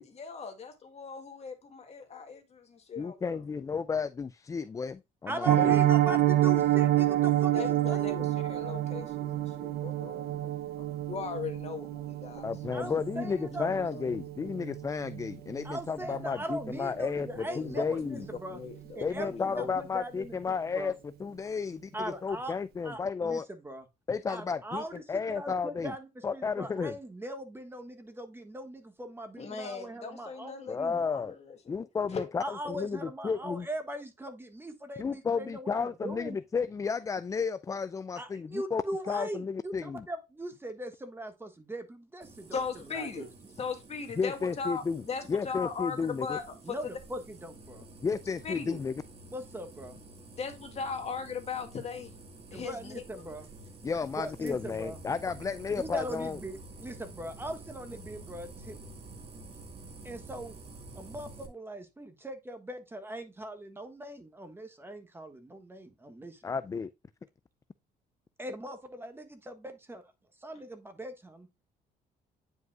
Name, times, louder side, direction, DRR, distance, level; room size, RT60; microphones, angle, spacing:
voice 1, 0.0-3.4 7.4-10.4 11.1-12.8 13.5-14.2 17.4-17.9 18.1-18.2 18.5-19.7 29.4-31.8 32.1-32.3 42.5-43.3 43.6-46.9 48.4-48.8 50.4-52.2 52.5-53.3, left 5 dB, 40° left, 2.0 m, -39 dB
voice 2, 3.0-5.8 12.4-18.3 19.0-20.9 21.2-23.5 24.1-25.9 26.2-27.0 30.7-31.3 31.7-33.7 35.0-40.1 44.2-45.0 45.3-46.4 48.0-48.9 53.8-56.4 66.4-66.9, left 5 dB, 20° left, 0.3 m, -32 dB
voice 3, 5.3-8.3 12.7-13.8 15.6-18.6 18.9-20.4 20.7-20.9 21.9-22.5 22.8-23.8 24.3-25.0 25.3-31.0 32.4-36.4 38.1-42.6 42.9-43.3 46.6-47.9 49.3-50.0 52.5-53.5 54.1-55.0 55.7-58.9 60.0-60.6 60.9-66.4 68.4-70.1 70.4-71.5, right 1 dB, 15° right, 1.4 m, -40 dB
Piano, 5.4-16.3 16.6-16.8 17.2-17.3 17.7-17.9 18.2-18.3, right 14 dB, 65° right, 0.8 m, -28 dB
sound 1, 42.2-61.5, right 2 dB, 35° right, 2.0 m, -49 dB
9.4 x 5.3 x 2.3 m
cardioid pair, 110°, 17 cm